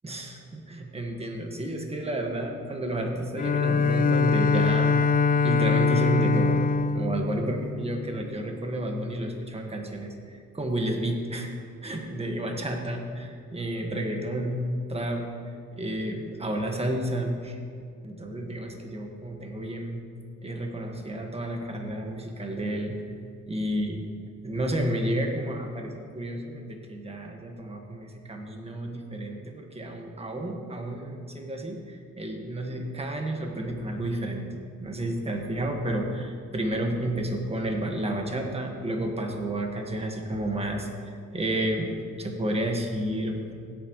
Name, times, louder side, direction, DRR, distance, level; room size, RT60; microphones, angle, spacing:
voice 1, 0.0-5.1 5.4-11.5 11.8-15.3 15.8-17.6 18.0-20.0 20.4-23.1 23.5-24.0 24.4-43.5, right 1 dB, 20° right, 2 dB, 1.6 m, -31 dB
Bowed string instrument, 3.4-8.4, left 5 dB, 30° left, 0.5 m, -24 dB
16.0 x 8.6 x 3.1 m, 2.3 s
cardioid pair, 90°, 30 cm